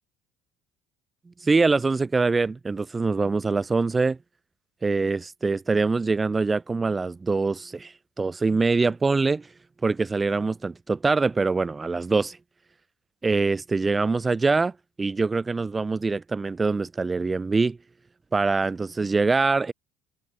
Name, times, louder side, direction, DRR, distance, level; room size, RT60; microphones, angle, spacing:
voice 1, 1.3-4.2 4.8-9.5 9.8-12.4 13.2-17.8 18.3-19.7, right 4 dB, 25° right, 0.3 m, -24 dB
hypercardioid pair, 60°, 0 cm